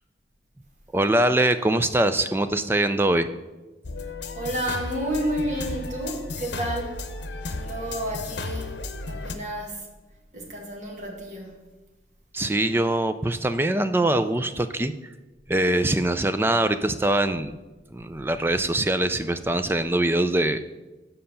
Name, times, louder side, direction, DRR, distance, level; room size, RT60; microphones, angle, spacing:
voice 1, 0.9-3.3 12.3-14.9 15.5-17.5 17.9-20.6, right 1 dB, 15° right, 11 dB, 0.4 m, -23 dB
sound 1, 3.8-9.4, left 3 dB, 85° left, 0.8 m, -34 dB
voice 2, 4.0-7.0 7.5-9.9 10.3-11.7, right 1 dB, 45° right, 0 dB, 1.8 m, -31 dB
7.7 x 5.6 x 6.8 m, 1.1 s
head